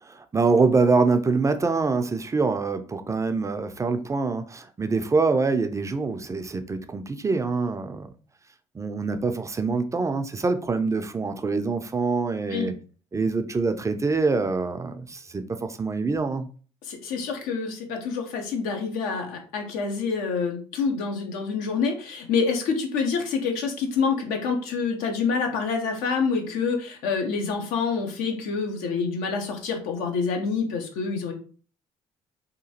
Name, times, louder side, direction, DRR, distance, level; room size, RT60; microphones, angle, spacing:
voice 1, 0.0-8.1 8.7-12.7 13.1-16.5, right 4 dB, 20° right, 0.3 m, -25 dB
voice 2, 16.8-31.3, left 5 dB, 75° left, 0.6 m, -27 dB
2.9 x 2.3 x 2.7 m
hypercardioid pair, 60°, 14 cm